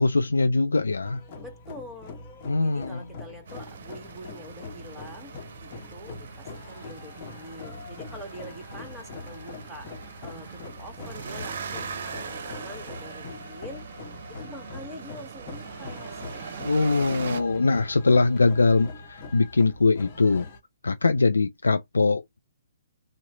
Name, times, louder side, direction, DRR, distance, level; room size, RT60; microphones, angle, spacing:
voice 1, 0.0-1.2 2.4-3.0 16.6-20.5 20.8-22.4, left 3 dB, 80° left, 0.3 m, -22 dB
sound 1, 1.0-20.6, left 3 dB, 40° left, 0.9 m, -43 dB
voice 2, 1.3-2.2 2.5-5.3 5.6-9.9 10.2-13.9 14.3-17.6, equal, 5° right, 1.1 m, -45 dB
sound 2, 3.5-17.4, right 6 dB, 55° right, 0.6 m, -40 dB
3.1 x 2.1 x 3.8 m
figure-of-eight pair, 130°, 0 cm